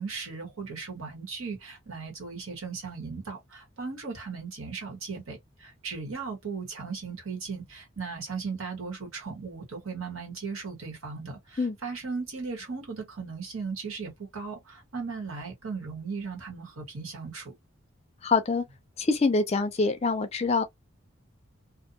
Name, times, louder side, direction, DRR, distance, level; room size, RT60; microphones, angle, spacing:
voice 1, 0.0-17.5, right 4 dB, 75° right, 1.3 m, -37 dB
voice 2, 18.2-18.6 19.0-20.6, left 3 dB, 30° left, 0.4 m, -25 dB
2.5 x 2.2 x 2.6 m
head